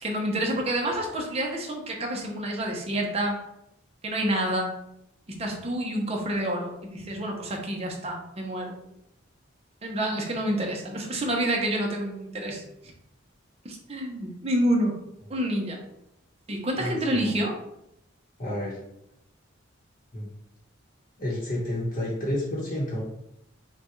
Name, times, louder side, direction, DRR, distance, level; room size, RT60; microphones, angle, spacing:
voice 1, 0.0-3.4 4.0-4.7 5.3-8.8 9.8-12.6 13.6-15.0 15.3-15.8 16.5-17.5, right 1 dB, 30° right, 0 dB, 0.8 m, -28 dB
voice 2, 16.8-17.4 18.4-18.8 20.1-20.3 21.2-23.0, left 1 dB, 40° left, -7 dB, 1.1 m, -30 dB
5.7 x 2.4 x 3.1 m, 0.79 s
head